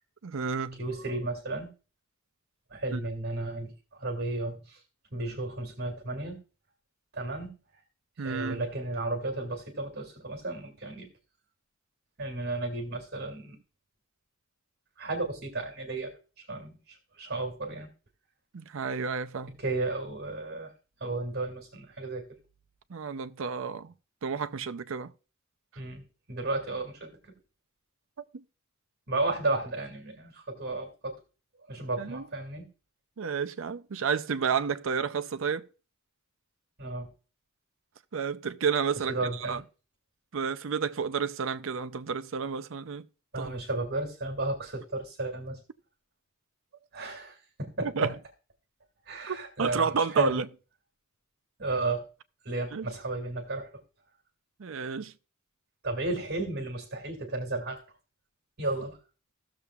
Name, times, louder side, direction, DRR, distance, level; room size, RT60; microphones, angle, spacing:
voice 1, 0.2-0.8 2.9-3.0 8.2-8.6 18.5-19.6 22.9-23.9 24.2-25.1 28.3-28.4 32.0-32.3 33.2-35.7 38.1-39.6 40.3-43.1 43.4-43.5 47.8-48.1 49.3-50.5 52.7-52.9 54.6-55.1, right 6 dB, 65° right, 0.5 m, -31 dB
voice 2, 0.8-1.7 2.7-4.8 5.1-6.4 7.1-7.5 8.2-11.1 12.2-13.6 15.0-16.2 16.5-17.9 19.6-20.7 21.0-22.3 25.8-27.3 29.1-31.1 31.7-32.7 36.8-37.1 39.1-39.6 43.3-45.6 46.9-48.1 49.1-50.4 51.6-52.1 52.4-53.7 55.8-57.8 58.6-59.0, right 2 dB, 50° right, 2.2 m, -33 dB
16.5 x 6.8 x 2.3 m
head